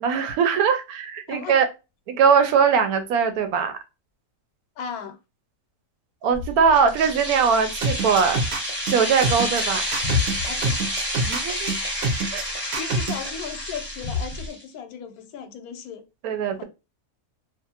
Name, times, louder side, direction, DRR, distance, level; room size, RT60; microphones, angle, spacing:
voice 1, 0.0-1.7 2.1-3.8 6.2-8.4 8.9-9.8 11.3-11.7 12.3-12.4 16.2-16.6, right 6 dB, 85° right, 1.1 m, -21 dB
voice 2, 1.3-1.6 4.8-5.2 10.4-11.0 12.4-16.0 16.6-16.7, left 7 dB, 80° left, 1.0 m, -36 dB
sound 1, 6.3-14.5, left 5 dB, 55° left, 0.8 m, -36 dB
sound 2, 6.7-14.6, equal, 10° right, 0.8 m, -30 dB
sound 3, 7.8-13.3, right 2 dB, 60° right, 0.8 m, -26 dB
2.5 x 2.4 x 2.8 m
omnidirectional pair, 1.5 m